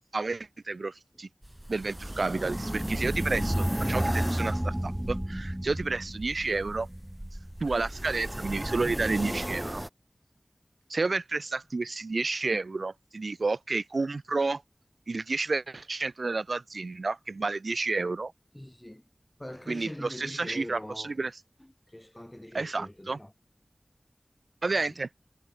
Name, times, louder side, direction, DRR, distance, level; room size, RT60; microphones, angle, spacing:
voice 1, 0.1-1.3 1.7-6.9 7.6-9.8 10.9-14.6 15.1-18.3 19.7-21.3 22.5-23.2 24.6-25.1, right 3 dB, 80° right, 0.4 m, -30 dB
sound 1, 1.4-9.9, right 1 dB, 10° right, 2.2 m, -32 dB
voice 2, 18.5-19.1 19.4-21.3 21.6-23.3 24.7-25.0, left 1 dB, 15° left, 2.9 m, -43 dB
wide cardioid pair, 70°, 0 cm